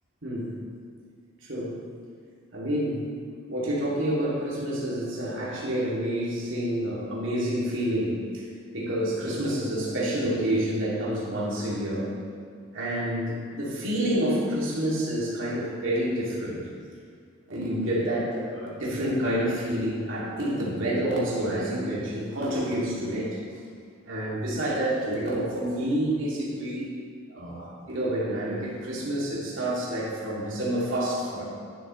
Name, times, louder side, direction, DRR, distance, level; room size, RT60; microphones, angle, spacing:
voice 1, 0.2-0.6 1.4-1.8 2.5-3.1 3.5-8.4 8.7-12.1 12.7-16.6 17.5-23.4 24.0-26.9 27.3-31.4, right 1 dB, 65° right, -6 dB, 2.6 m, -28 dB
11.5 x 10.5 x 3.2 m, 2.2 s
head